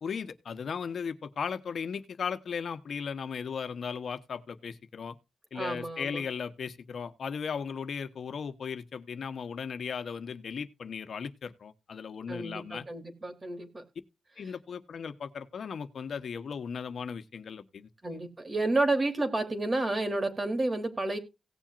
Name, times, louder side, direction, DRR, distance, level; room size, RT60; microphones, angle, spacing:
voice 1, 0.0-5.2 5.5-12.8 14.4-17.9, left 6 dB, 70° left, 1.1 m, -37 dB
voice 2, 5.5-6.2 12.3-13.8 18.0-21.2, right 2 dB, 35° right, 3.3 m, -30 dB
17.5 x 7.2 x 2.6 m
cardioid pair, 50°, 0 cm